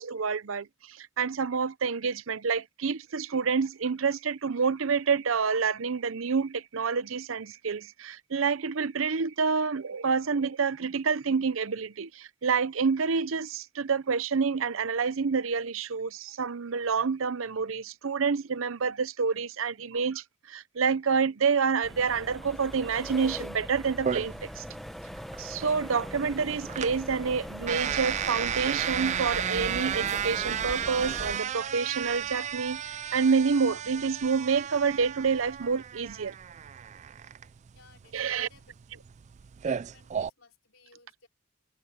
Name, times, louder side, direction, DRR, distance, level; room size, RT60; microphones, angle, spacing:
voice 1, 0.0-24.6 25.4-36.3 38.1-38.5, right 5 dB, 75° right, 0.7 m, -28 dB
sound 1, 21.8-31.4, equal, ahead, 0.8 m, -40 dB
sound 2, 24.1-40.3, right 9 dB, 35° right, 0.3 m, -34 dB
voice 2, 37.7-38.9 39.6-41.3, left 4 dB, 70° left, 4.2 m, -58 dB
head